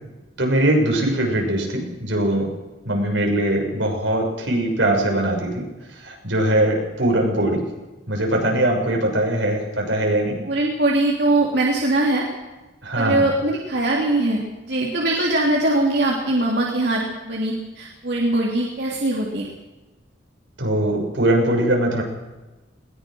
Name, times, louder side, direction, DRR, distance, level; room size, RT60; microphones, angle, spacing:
voice 1, 0.4-2.5 2.8-5.6 5.9-7.6 8.1-10.4 12.8-13.3 20.6-22.0, right 1 dB, 85° right, 1 dB, 6.4 m, -21 dB
voice 2, 10.5-12.2 12.9-19.4, right 2 dB, 60° right, -2 dB, 3.3 m, -21 dB
21.5 x 19.5 x 6.4 m, 1.1 s
head